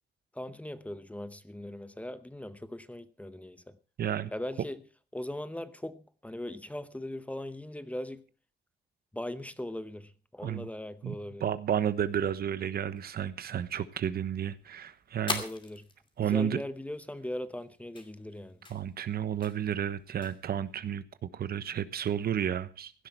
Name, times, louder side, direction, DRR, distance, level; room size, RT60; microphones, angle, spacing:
voice 1, 0.3-3.8 4.3-4.8 5.1-8.2 9.1-11.5 15.4-15.9 16.2-18.6, left 1 dB, 10° left, 0.8 m, -39 dB
voice 2, 4.0-4.3 10.4-10.7 11.0-11.1 11.4-15.4 16.2-16.6 18.7-23.1, right 9 dB, 65° right, 1.1 m, -32 dB
sound 1, 11.9-21.0, left 3 dB, 30° left, 2.5 m, -44 dB
16.5 x 12.0 x 4.6 m
wide cardioid pair, 130°, 17 cm